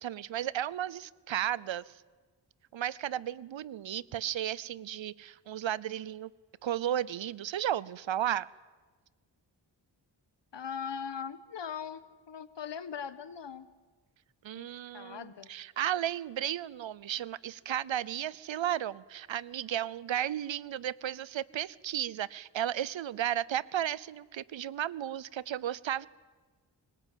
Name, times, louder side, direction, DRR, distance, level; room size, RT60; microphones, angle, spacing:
voice 1, 0.0-2.0 2.7-6.3 6.6-8.5 14.4-26.1, right 11 dB, 80° right, 22 dB, 0.7 m, -34 dB
voice 2, 10.5-12.0 12.3-13.7 14.5-14.7 14.9-15.5, left 7 dB, 70° left, 14 dB, 1.4 m, -40 dB
24.5 x 20.0 x 9.2 m, 1.4 s
wide cardioid pair, 90°, 45 cm